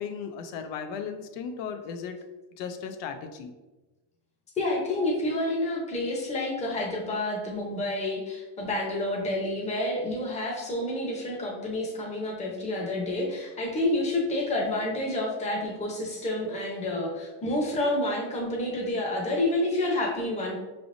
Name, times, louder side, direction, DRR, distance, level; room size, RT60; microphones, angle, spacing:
voice 1, 0.0-2.2 2.6-3.6, left 6 dB, 90° left, 6 dB, 0.6 m, -36 dB
voice 2, 4.6-20.6, left 1 dB, 15° left, -1 dB, 0.7 m, -29 dB
5.8 x 3.4 x 2.5 m, 1.2 s
cardioid pair, 175°, 43 cm